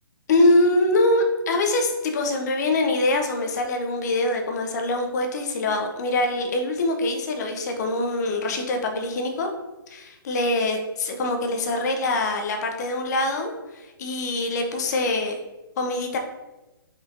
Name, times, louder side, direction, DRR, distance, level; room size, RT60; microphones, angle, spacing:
voice 1, 0.3-9.5 9.9-15.4 15.8-16.2, left 2 dB, 50° left, 4 dB, 0.8 m, -24 dB
5.2 x 3.7 x 2.5 m, 1.1 s
figure-of-eight pair, 130°, 12 cm